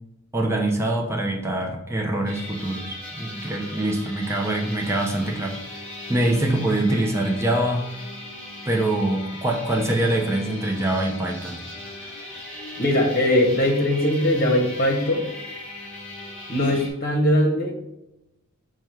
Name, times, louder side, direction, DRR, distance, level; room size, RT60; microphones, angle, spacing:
voice 1, 0.3-7.9 8.7-11.6, right 1 dB, 10° right, 0 dB, 0.6 m, -24 dB
sound 1, 2.2-16.9, left 1 dB, 5° left, 1.2 m, -38 dB
voice 2, 12.8-15.2 16.5-17.7, left 1 dB, 45° left, 0 dB, 1.0 m, -20 dB
5.0 x 2.3 x 4.5 m, 0.91 s
head